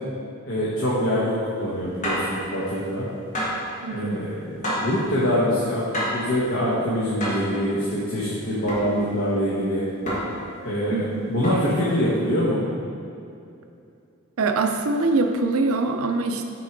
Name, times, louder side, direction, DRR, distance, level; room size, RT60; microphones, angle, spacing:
voice 1, 0.5-3.1 3.9-5.8 6.1-9.8 10.6-12.6, equal, 60° left, -8 dB, 1.1 m, -24 dB
sound 1, 2.0-2.3 3.3-3.7 4.6-5.0 5.9-6.3 7.2-7.5 8.7-8.9 10.1-10.5 11.4-11.8, equal, 35° left, 1.4 m, -28 dB
voice 2, 3.8-4.2 10.9-11.2 14.4-16.5, right 3 dB, 75° right, 5 dB, 0.5 m, -23 dB
6.1 x 4.5 x 4.5 m, 2.6 s
head